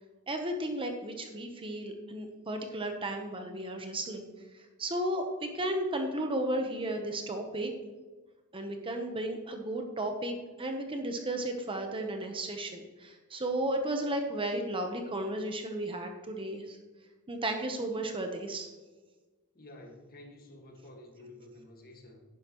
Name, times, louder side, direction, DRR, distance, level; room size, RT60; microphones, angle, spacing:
voice 1, 0.3-4.3 4.5-7.7 8.5-16.8 17.3-18.7, right 1 dB, 25° right, 4 dB, 1.0 m, -34 dB
voice 2, 19.6-22.2, left 1 dB, 45° left, 2 dB, 1.8 m, -51 dB
11.0 x 10.0 x 3.1 m, 1.3 s
head